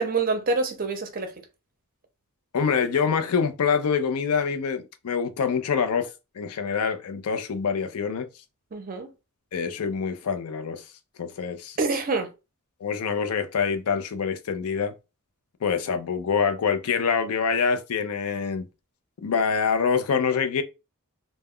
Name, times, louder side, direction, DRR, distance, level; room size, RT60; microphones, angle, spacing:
voice 1, 0.0-1.3 8.7-9.1 11.8-12.3, right 3 dB, 40° right, 0.5 m, -26 dB
voice 2, 2.5-6.1 6.4-8.3 9.5-10.8 11.2-11.8 12.8-14.9 15.6-18.7 19.2-20.6, left 6 dB, 75° left, 0.4 m, -25 dB
2.2 x 2.0 x 3.5 m
head